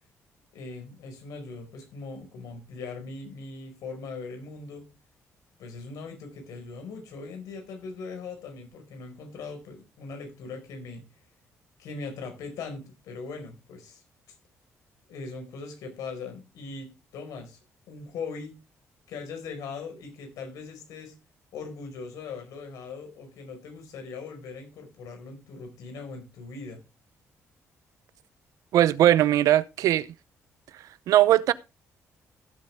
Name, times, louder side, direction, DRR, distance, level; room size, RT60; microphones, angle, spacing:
voice 1, 0.5-4.8 5.6-11.0 11.8-14.0 15.1-17.6 17.9-18.6 19.1-21.2 21.5-26.8, left 4 dB, 85° left, 5.0 m, -40 dB
voice 2, 28.7-30.1 31.1-31.5, right 12 dB, 85° right, 0.7 m, -19 dB
16.0 x 7.9 x 3.6 m
cardioid pair, 85°, 6 cm